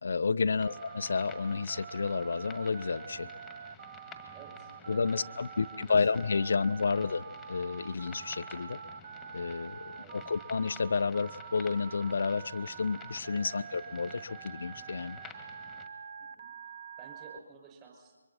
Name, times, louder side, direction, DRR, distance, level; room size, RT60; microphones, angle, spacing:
voice 1, 0.0-3.3 4.9-8.8 9.3-15.2, left 4 dB, 55° left, 14 dB, 0.6 m, -31 dB
sound 1, 0.6-15.9, left 4 dB, 5° left, 1.8 m, -53 dB
Telephone, 0.6-17.4, right 7 dB, 40° right, 0.6 m, -46 dB
voice 2, 4.3-6.2 9.9-10.3 13.3-13.6 16.2-16.5 16.8-18.1, right 5 dB, 20° right, 1 dB, 5.6 m, -54 dB
29.0 x 23.5 x 4.3 m, 1.4 s
figure-of-eight pair, 145°, 0 cm